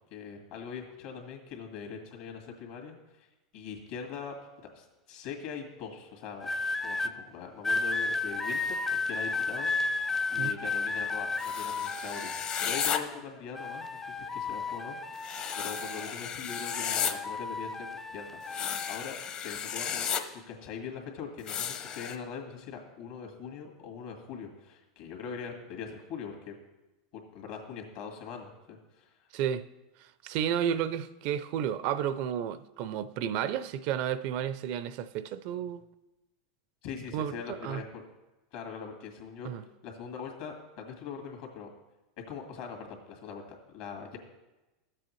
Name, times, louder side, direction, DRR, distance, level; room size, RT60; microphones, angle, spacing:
voice 1, 0.1-3.3 3.5-4.3 4.7-6.5 6.8-18.4 18.9-19.2 19.4-26.5 27.3-29.3 36.8-38.0 38.5-39.5 39.8-41.7 42.2-43.4 43.7-44.2, left 6 dB, 65° left, 1.8 m, -42 dB
sound 1, 6.4-7.1 7.6-13.2 13.5-16.2 16.5-19.0 19.8-20.1, left 3 dB, 15° left, 0.5 m, -33 dB
sound 2, 11.4-13.0 15.2-17.1 18.5-20.2 21.5-22.2, left 8 dB, 40° left, 0.8 m, -33 dB
voice 2, 29.3-29.7 30.0-35.8 37.1-37.8 39.4-39.6, right 9 dB, 55° right, 0.4 m, -32 dB
13.0 x 7.6 x 3.2 m
hypercardioid pair, 105°, 3 cm